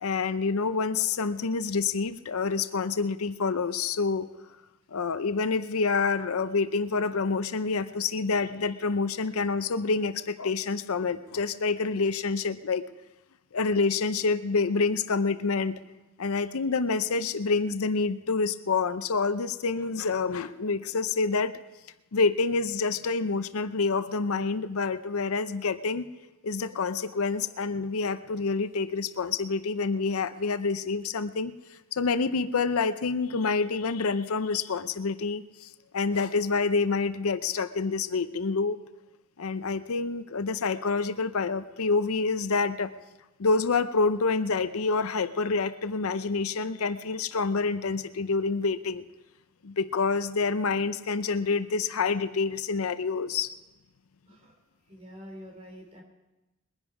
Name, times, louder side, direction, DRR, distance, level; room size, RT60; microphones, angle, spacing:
voice 1, 0.0-4.3 4.9-12.9 13.5-15.7 16.2-21.5 22.1-26.1 26.4-31.5 31.9-38.8 39.4-42.9 43.4-49.0 49.6-53.5, left 4 dB, 80° left, 12 dB, 0.6 m, -27 dB
voice 2, 54.9-56.0, equal, 25° right, 1 dB, 2.9 m, -46 dB
21.0 x 10.5 x 4.8 m, 1.0 s
head